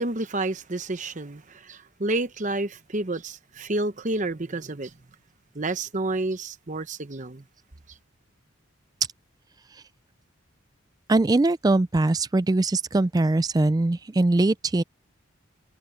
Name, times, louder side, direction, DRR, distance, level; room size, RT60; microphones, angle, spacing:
voice 1, 0.0-4.9 5.5-7.4, right 2 dB, 35° right, 0.9 m, -29 dB
voice 2, 11.1-14.8, right 2 dB, 20° right, 0.3 m, -22 dB
head